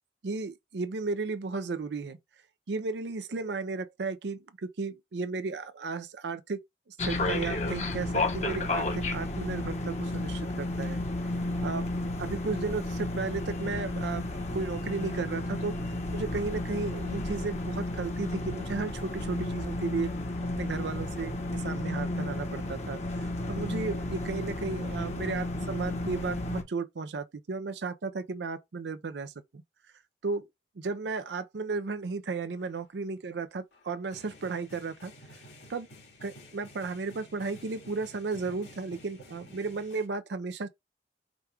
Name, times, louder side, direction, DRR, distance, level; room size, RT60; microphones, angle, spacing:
voice 1, 0.2-2.2 2.7-6.6 6.9-11.0 11.6-11.8 12.2-20.1 20.6-29.6 30.2-30.5 30.8-35.4 35.7-35.9 36.2-40.7, right 4 dB, 80° right, 0.5 m, -34 dB
sound 1, 7.0-26.6, left 2 dB, 40° left, 1.0 m, -32 dB
sound 2, 32.5-32.8 33.7-40.1, left 1 dB, 85° left, 2.3 m, -52 dB
5.1 x 2.3 x 4.4 m
head